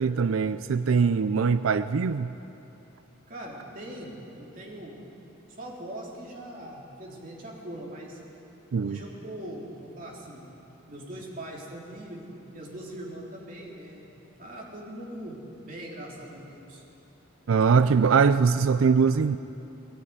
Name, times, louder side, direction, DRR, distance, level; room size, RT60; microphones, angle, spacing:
voice 1, 0.0-2.3 8.7-9.0 17.5-19.4, right 5 dB, 85° right, 13 dB, 0.4 m, -22 dB
voice 2, 3.3-4.1 4.4-5.0 5.6-8.2 8.8-10.4 10.9-14.1 14.4-16.8, right 1 dB, 45° right, -3 dB, 3.7 m, -41 dB
19.5 x 14.0 x 9.7 m, 2.9 s
head